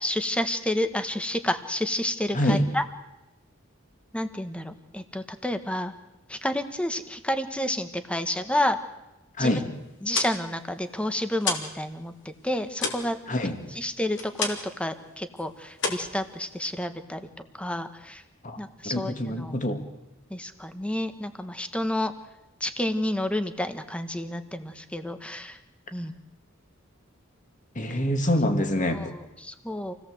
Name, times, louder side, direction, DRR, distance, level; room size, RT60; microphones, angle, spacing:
voice 1, 0.0-2.8 4.1-5.9 6.3-8.8 9.4-9.6 10.0-13.2 13.7-17.3 17.6-18.2 18.6-19.5 20.3-22.1 22.6-25.6 25.9-26.1 28.9-29.9, left 1 dB, 5° left, 9 dB, 1.4 m, -30 dB
voice 2, 9.4-9.7 13.3-13.6 18.4-18.6 18.8-19.8 27.8-29.0, left 1 dB, 40° left, 6 dB, 2.3 m, -25 dB
sound 1, 9.9-11.8 12.1-14.8 15.1-15.4 15.7-16.8, left 4 dB, 65° left, 3.3 m, -32 dB
27.5 x 17.5 x 8.0 m, 0.98 s
head